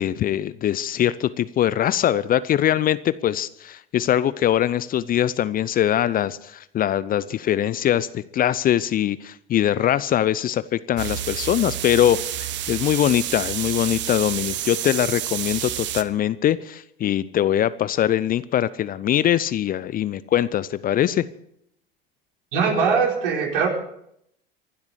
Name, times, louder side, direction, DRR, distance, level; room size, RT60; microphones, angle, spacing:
voice 1, 0.0-21.2, left 11 dB, 30° left, 17 dB, 0.6 m, -22 dB
sound 1, 11.0-16.0, right 12 dB, 40° right, 1.1 m, -29 dB
voice 2, 22.5-23.7, right 5 dB, 65° right, 1 dB, 4.6 m, -21 dB
24.5 x 12.0 x 4.8 m, 0.73 s
figure-of-eight pair, 75°, 29 cm